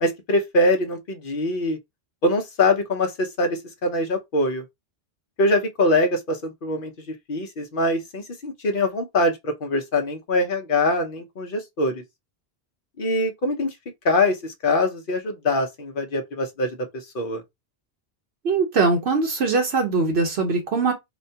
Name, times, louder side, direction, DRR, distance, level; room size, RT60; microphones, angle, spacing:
voice 1, 0.0-1.8 2.2-4.6 5.4-12.0 13.0-13.8 14.0-17.4, left 2 dB, 60° left, 1.0 m, -23 dB
voice 2, 18.4-20.9, right 4 dB, 85° right, 1.1 m, -21 dB
4.2 x 2.2 x 2.7 m
omnidirectional pair, 1.0 m